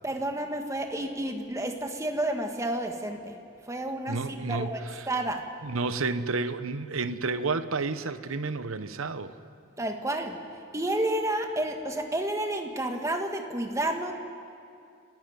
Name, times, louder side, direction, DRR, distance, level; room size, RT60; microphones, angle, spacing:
voice 1, 0.0-3.4 3.7-5.4 9.8-10.4 10.7-14.1, right 1 dB, 15° right, 4 dB, 1.6 m, -30 dB
voice 2, 4.1-5.1 5.6-9.4, right 3 dB, 70° right, 12 dB, 1.0 m, -31 dB
29.5 x 12.0 x 9.5 m, 2.4 s
head